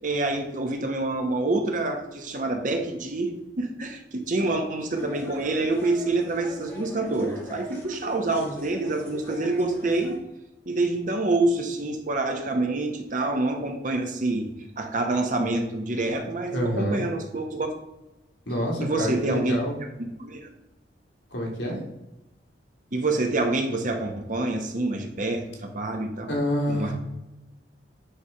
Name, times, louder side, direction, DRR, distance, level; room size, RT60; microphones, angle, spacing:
voice 1, 0.0-10.2 10.7-17.7 18.8-19.6 20.0-20.5 22.9-26.4 26.7-26.9, right 2 dB, 45° right, 4 dB, 1.1 m, -27 dB
sound 1, 4.9-10.2, equal, 10° left, 1.9 m, -41 dB
voice 2, 16.5-17.0 18.5-19.7 21.3-21.8 26.3-26.9, equal, 80° left, -1 dB, 2.1 m, -27 dB
9.0 x 3.4 x 5.5 m, 0.95 s
head